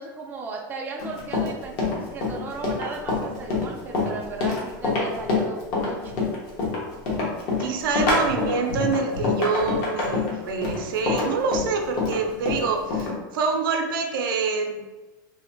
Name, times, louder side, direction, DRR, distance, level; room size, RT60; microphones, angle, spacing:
voice 1, 0.0-6.2, right 4 dB, 15° right, -1 dB, 0.3 m, -36 dB
Run, 1.0-13.1, left 3 dB, 50° left, 0.8 m, -26 dB
voice 2, 7.6-14.9, right 4 dB, 80° right, 3 dB, 0.4 m, -26 dB
2.7 x 2.1 x 2.5 m, 1.1 s
supercardioid pair, 135°, 11 cm